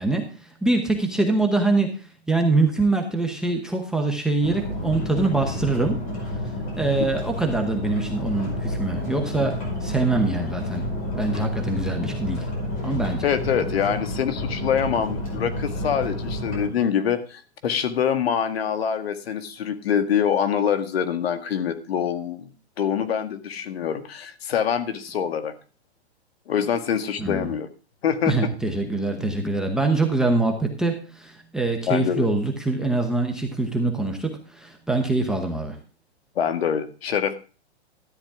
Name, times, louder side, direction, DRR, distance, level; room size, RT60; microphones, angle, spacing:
voice 1, 0.0-6.1 6.8-10.8 11.1-12.5 12.8-13.3 27.2-27.5 28.3-35.8, right 2 dB, ahead, 4 dB, 0.9 m, -24 dB
sound 1, 4.4-16.7, left 1 dB, 25° left, 5.0 m, -30 dB
voice 2, 13.2-22.5 22.8-25.5 26.5-27.7 28.0-28.5 31.9-32.3 36.4-37.3, left 8 dB, 60° left, 9 dB, 1.9 m, -25 dB
13.0 x 9.7 x 3.6 m, 0.36 s
hypercardioid pair, 155°, 34 cm